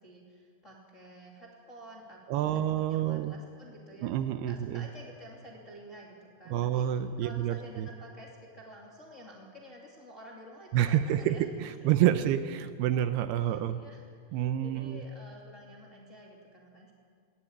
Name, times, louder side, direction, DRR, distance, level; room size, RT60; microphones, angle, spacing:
voice 1, 0.0-2.6 2.9-4.1 4.4-6.9 7.2-11.5 11.8-11.9 13.4-14.0 14.3-16.9, equal, 25° left, -2 dB, 2.1 m, -50 dB
voice 2, 2.3-3.3 4.0-4.8 6.5-7.9 10.7-13.8 14.3-15.0, right 11 dB, 80° right, 10 dB, 2.6 m, -28 dB
19.5 x 18.0 x 8.8 m, 2.1 s
omnidirectional pair, 4.8 m